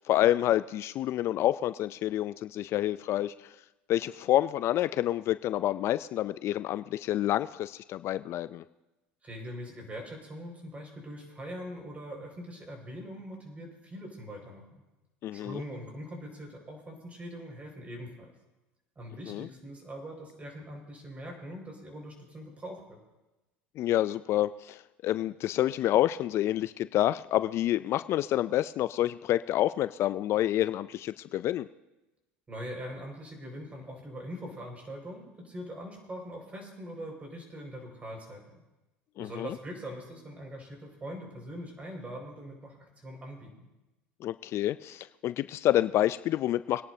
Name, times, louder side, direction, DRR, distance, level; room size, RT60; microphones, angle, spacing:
voice 1, 0.0-3.5 3.9-8.6 15.2-15.6 19.3-19.5 23.8-31.7 39.2-39.5 44.2-46.8, left 13 dB, 50° left, 14 dB, 0.4 m, -28 dB
voice 2, 9.2-14.6 15.3-18.3 19.0-23.0 32.5-38.6 39.2-43.7, equal, 25° right, 1 dB, 5.4 m, -42 dB
24.0 x 10.5 x 2.7 m, 1.0 s
hypercardioid pair, 85°, 6 cm